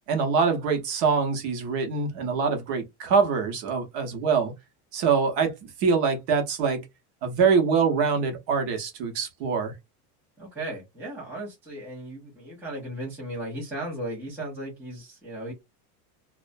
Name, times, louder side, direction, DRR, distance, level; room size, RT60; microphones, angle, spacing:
voice 1, 0.1-4.5 4.9-6.8 7.2-9.7, right 5 dB, 45° right, 0.8 m, -24 dB
voice 2, 10.4-15.5, right 1 dB, 5° right, 0.5 m, -36 dB
2.4 x 2.1 x 2.4 m
supercardioid pair, 170°, 46 cm